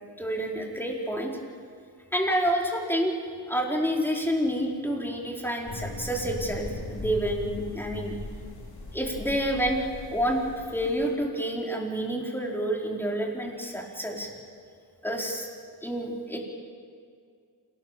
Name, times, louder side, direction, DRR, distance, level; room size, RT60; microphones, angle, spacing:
voice 1, 0.2-1.3 2.1-3.1 3.5-8.1 8.9-9.8 10.1-10.4 10.7-14.3 15.0-15.5 15.8-16.4, equal, 5° left, -1 dB, 4.7 m, -28 dB
sound 1, 5.7-11.1, left 2 dB, 60° left, 4.4 m, -39 dB
27.5 x 18.5 x 7.0 m, 2.2 s
wide cardioid pair, 75°, 41 cm